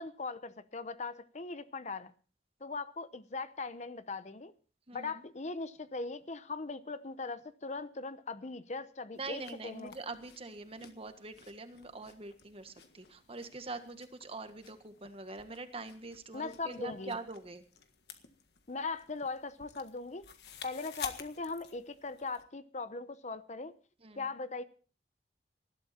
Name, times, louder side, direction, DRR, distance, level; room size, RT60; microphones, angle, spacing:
voice 1, 0.0-2.1 2.6-4.5 4.9-9.9 16.3-17.2 18.7-20.3 20.6-23.7 24.2-24.6, left 3 dB, 40° left, 0.8 m, -40 dB
voice 2, 4.9-5.2 9.1-17.6 24.0-24.3, right 3 dB, 35° right, 1.6 m, -44 dB
sound 1, 9.1-22.4, left 7 dB, 65° left, 1.6 m, -51 dB
19.5 x 12.5 x 4.3 m
head